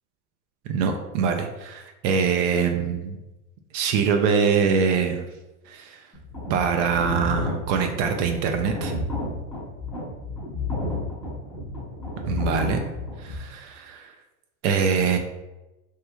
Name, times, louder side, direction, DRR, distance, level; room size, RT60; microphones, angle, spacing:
voice 1, 0.7-3.2 3.7-5.2 5.7-6.0 6.5-8.9 12.3-12.8 13.2-14.1 14.6-15.2, right 6 dB, 55° right, 4 dB, 0.5 m, -24 dB
sound 1, 6.1-13.4, left 2 dB, 5° left, 0.7 m, -31 dB
3.1 x 3.0 x 2.3 m, 1.0 s
supercardioid pair, 120°, 45 cm